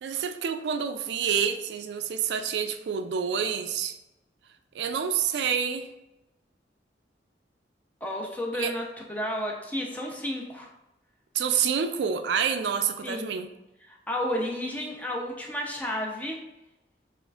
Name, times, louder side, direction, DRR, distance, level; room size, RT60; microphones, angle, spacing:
voice 1, 0.0-3.9 4.7-5.9 8.5-8.7 11.3-13.5, right 7 dB, 75° right, 8 dB, 0.3 m, -28 dB
voice 2, 8.0-10.7 13.0-13.3 13.9-16.4, left 1 dB, 10° left, -1 dB, 0.5 m, -32 dB
6.6 x 2.5 x 2.4 m, 0.96 s
head